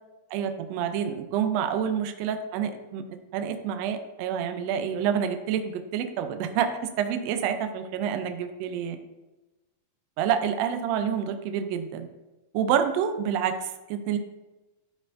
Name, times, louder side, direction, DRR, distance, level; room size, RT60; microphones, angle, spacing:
voice 1, 0.3-3.0 3.3-6.7 7.0-9.0 10.2-12.1 12.5-14.2, right 8 dB, 80° right, 7 dB, 1.5 m, -28 dB
11.5 x 4.9 x 2.6 m, 1.1 s
omnidirectional pair, 3.7 m